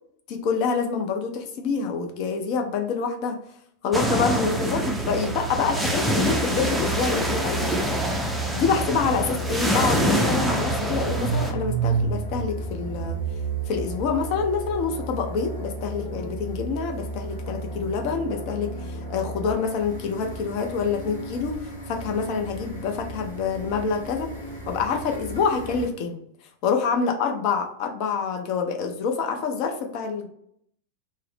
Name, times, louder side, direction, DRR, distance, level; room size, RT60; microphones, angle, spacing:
voice 1, 0.3-3.4 3.8-7.7 8.5-13.2 13.7-21.6 21.9-24.3 24.7-26.2 26.6-30.3, left 5 dB, 45° left, 4 dB, 0.5 m, -26 dB
sound 1, 3.9-11.5, right 1 dB, 5° right, 0.4 m, -25 dB
sound 2, 6.0-25.9, right 1 dB, 80° left, 1.0 m, -35 dB
Car / Engine starting, 9.3-9.4 9.7-14.9, right 7 dB, 65° right, 0.6 m, -30 dB
2.7 x 2.0 x 3.2 m, 0.69 s
figure-of-eight pair, 90°, 0 cm